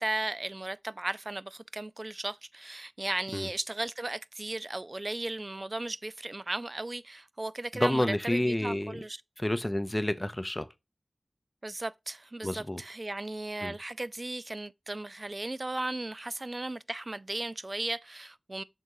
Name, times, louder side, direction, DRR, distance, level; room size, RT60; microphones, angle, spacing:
voice 1, 0.0-9.2 11.6-18.6, right 2 dB, 35° right, 0.3 m, -36 dB
voice 2, 7.7-9.0 9.4-10.7 12.4-12.8 13.6-13.7, left 1 dB, 15° left, 0.7 m, -29 dB
6.6 x 3.6 x 4.7 m
wide cardioid pair, 80°, 0 cm